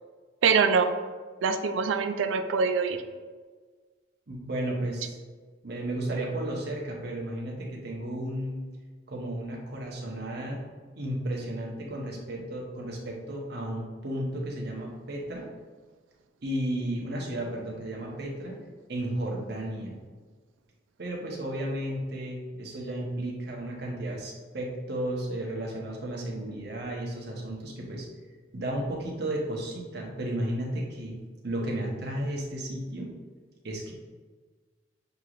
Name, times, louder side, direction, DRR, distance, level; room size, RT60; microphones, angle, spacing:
voice 1, 0.4-0.9 1.4-3.0, right 5 dB, 80° right, 8 dB, 0.4 m, -24 dB
voice 2, 4.3-5.2 5.6-8.6 9.1-10.6 10.9-15.5 16.4-18.5 18.9-19.9 21.0-28.1 28.5-31.2 31.4-33.1 33.6-33.9, right 1 dB, 55° right, -2 dB, 0.9 m, -33 dB
6.5 x 3.0 x 2.5 m, 1.5 s
head